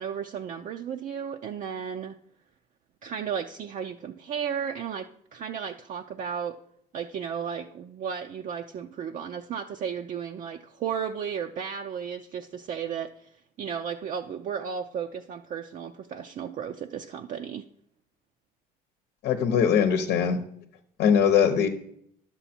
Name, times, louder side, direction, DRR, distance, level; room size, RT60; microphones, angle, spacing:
voice 1, 0.0-2.2 3.0-6.6 6.9-13.3 13.6-17.7, right 7 dB, 50° right, 4 dB, 0.5 m, -34 dB
voice 2, 19.2-20.4 21.0-21.7, left 7 dB, 85° left, 7 dB, 0.9 m, -21 dB
10.5 x 7.0 x 4.3 m, 0.71 s
cardioid pair, 110°, 17 cm